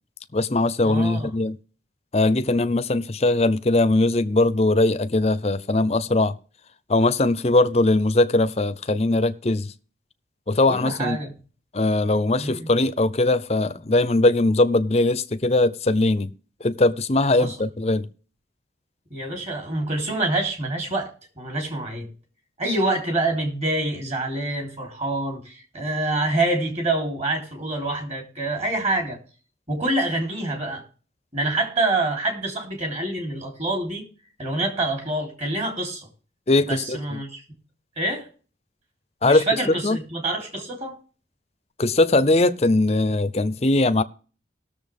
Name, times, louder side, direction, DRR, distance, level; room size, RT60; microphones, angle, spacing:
voice 1, 0.3-1.6 2.1-6.4 6.9-9.7 10.5-11.2 11.7-16.3 16.6-18.1 36.5-37.2 39.2-40.0 41.8-44.0, left 2 dB, 35° left, 0.6 m, -20 dB
voice 2, 0.8-1.3 10.7-11.3 12.4-12.7 17.4-17.5 19.1-21.1 21.4-22.1 22.6-29.2 29.7-30.8 31.3-34.0 34.4-36.1 36.6-37.4 38.0-38.3 39.2-41.0, right 2 dB, 40° right, 3.3 m, -26 dB
19.0 x 6.9 x 3.5 m
head